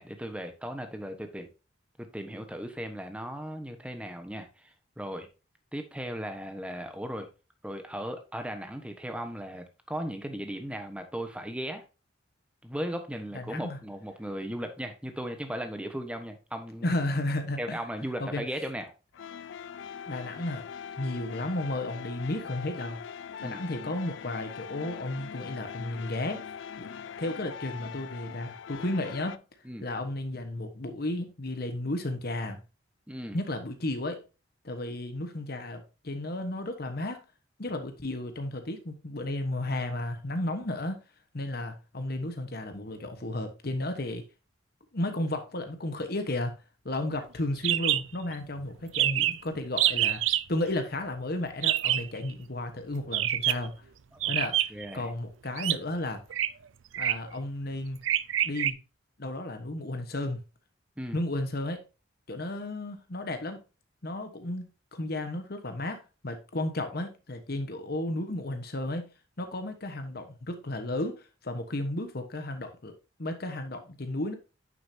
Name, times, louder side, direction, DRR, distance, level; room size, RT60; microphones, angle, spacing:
voice 1, 0.0-1.5 2.0-5.3 5.7-7.3 7.6-11.9 12.6-16.9 17.6-18.9 23.4-23.6 29.6-29.9 33.1-33.4 54.1-54.3 54.7-55.1 61.0-61.2, equal, 5° right, 1.2 m, -37 dB
voice 2, 13.3-13.8 16.8-17.8 18.2-18.4 20.1-20.7 21.0-23.0 23.4-26.4 26.8-26.9 27.2-29.4 29.8-32.6 33.3-34.2 34.6-37.2 37.6-41.0 41.3-44.2 44.9-46.6 46.8-50.2 50.5-53.8 54.3-56.2 57.0-58.0 58.4-58.8 59.2-60.4 61.1-61.8 62.3-63.6 64.0-69.1 69.4-72.9 73.2-74.3, left 1 dB, 55° left, 1.2 m, -33 dB
sound 1, 19.1-29.4, left 7 dB, 70° left, 0.4 m, -42 dB
sound 2, 47.6-48.0 48.3-48.4 48.6-48.7 48.9-49.4 49.8-50.4 51.6-52.1 53.1-53.7 54.2-54.9 55.6-55.8 56.3-56.5 56.9-57.3 58.0-58.7, right 13 dB, 80° right, 0.5 m, -26 dB
9.2 x 6.8 x 2.8 m
head